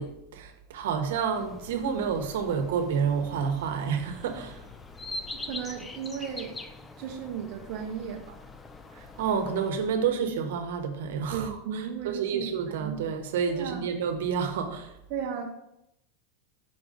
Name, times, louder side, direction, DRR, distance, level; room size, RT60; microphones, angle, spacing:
voice 1, 0.0-4.6 8.9-14.9, right 6 dB, 75° right, 0.9 m, -29 dB
sound 1, 1.3-9.7, left 2 dB, 10° left, 0.3 m, -43 dB
voice 2, 5.3-6.6 7.0-8.4 11.3-13.0 13.5-13.9 15.1-15.5, right 7 dB, 40° right, 0.6 m, -35 dB
5.8 x 3.8 x 5.1 m
supercardioid pair, 175°, 0 cm